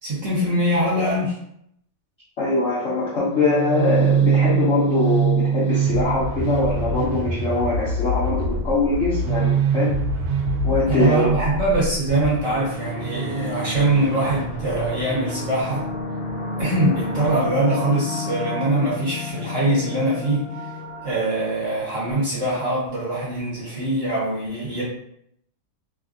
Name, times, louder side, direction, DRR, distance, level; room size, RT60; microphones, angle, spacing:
voice 1, 0.0-1.3 10.9-15.8 16.6-20.4 21.0-24.8, right 1 dB, 50° right, -7 dB, 1.0 m, -23 dB
voice 2, 2.4-10.0 10.6-11.3, left 3 dB, 60° left, -8 dB, 0.7 m, -22 dB
sound 1, 3.3-15.2, right 5 dB, 80° right, 1.3 m, -24 dB
sound 2, 12.3-22.1, left 2 dB, 80° left, 1.4 m, -31 dB
3.2 x 2.5 x 2.4 m, 0.72 s
omnidirectional pair, 2.1 m